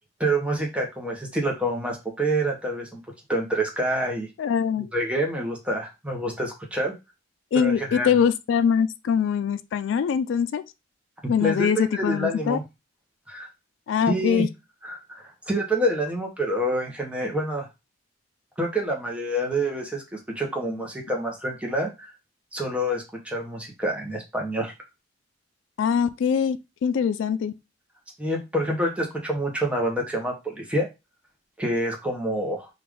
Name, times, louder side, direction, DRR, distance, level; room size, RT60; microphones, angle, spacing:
voice 1, 0.2-3.0 3.3-4.3 4.9-6.9 7.5-8.1 11.2-12.6 13.3-13.5 14.1-14.5 14.8-17.7 18.6-22.1 22.5-24.7 28.2-30.9 31.6-32.7, right 1 dB, 5° right, 0.9 m, -27 dB
voice 2, 4.4-4.9 7.5-10.6 11.3-12.6 13.9-14.5 25.8-27.5, left 7 dB, 85° left, 0.3 m, -23 dB
3.2 x 2.5 x 3.4 m
head